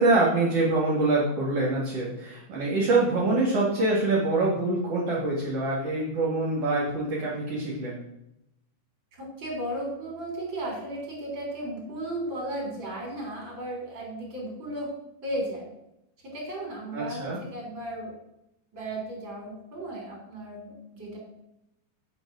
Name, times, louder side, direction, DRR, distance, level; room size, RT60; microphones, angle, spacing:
voice 1, 0.0-8.0 16.9-17.4, right 2 dB, 55° right, -4 dB, 2.9 m, -25 dB
voice 2, 9.1-14.9 15.2-15.7 16.2-18.1 18.7-21.2, right 1 dB, 40° right, -1 dB, 4.0 m, -35 dB
8.8 x 6.3 x 6.2 m, 0.85 s
omnidirectional pair, 3.4 m